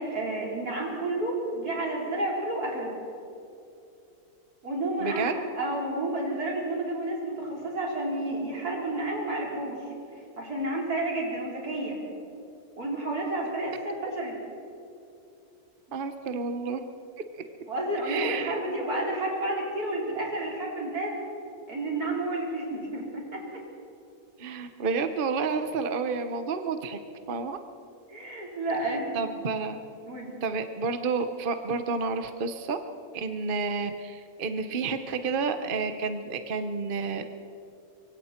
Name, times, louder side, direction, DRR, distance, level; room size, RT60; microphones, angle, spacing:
voice 1, 0.0-3.0 4.6-9.8 10.4-12.0 12.8-14.3 17.7-21.2 21.7-23.6 28.1-29.3 30.0-30.3, right 1 dB, 85° right, -3 dB, 4.9 m, -31 dB
voice 2, 5.0-5.3 15.9-16.8 17.3-17.4 18.0-18.6 24.4-27.0 27.3-27.6 29.1-29.8 30.4-32.8 33.1-37.2, right 4 dB, 40° right, 8 dB, 1.0 m, -30 dB
25.0 x 23.5 x 4.5 m, 2.7 s
omnidirectional pair, 1.6 m